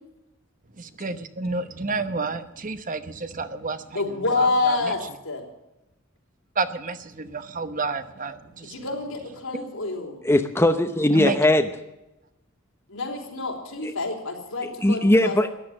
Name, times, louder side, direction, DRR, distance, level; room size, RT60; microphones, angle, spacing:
voice 1, 0.8-4.9 6.6-8.7 11.1-11.4, right 3 dB, 40° right, 11 dB, 0.9 m, -30 dB
voice 2, 3.9-5.4 8.6-10.2 12.9-15.5, left 3 dB, 85° left, 0 dB, 4.1 m, -27 dB
voice 3, 10.2-11.7 13.8-13.9 14.8-15.5, left 1 dB, 10° left, 7 dB, 0.8 m, -19 dB
13.5 x 10.5 x 8.6 m, 0.92 s
head